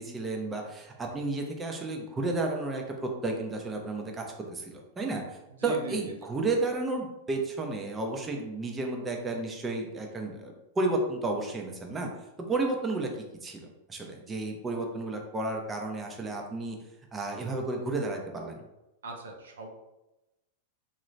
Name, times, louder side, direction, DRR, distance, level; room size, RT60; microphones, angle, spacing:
voice 1, 0.0-12.1 12.4-13.1 13.4-16.8 17.1-18.6, right 2 dB, 15° right, 1 dB, 0.6 m, -32 dB
voice 2, 5.6-5.9 19.0-19.7, right 3 dB, 90° right, 2 dB, 0.6 m, -39 dB
3.0 x 2.6 x 3.1 m, 0.95 s
hypercardioid pair, 115°, 0 cm